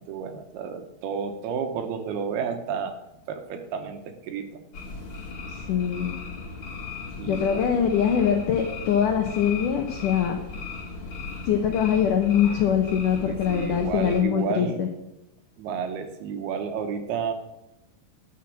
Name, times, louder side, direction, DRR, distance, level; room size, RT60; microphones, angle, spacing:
voice 1, 0.0-3.0 3.3-4.6 7.2-7.7 13.2-14.8 15.6-17.3, right 6 dB, 75° right, 7 dB, 2.6 m, -31 dB
sound 1, 4.7-14.2, left 4 dB, 45° left, 1.8 m, -37 dB
voice 2, 5.5-6.2 7.3-10.4 11.5-14.9, left 8 dB, 80° left, 4 dB, 1.9 m, -23 dB
11.5 x 6.0 x 7.4 m, 0.88 s
omnidirectional pair, 5.0 m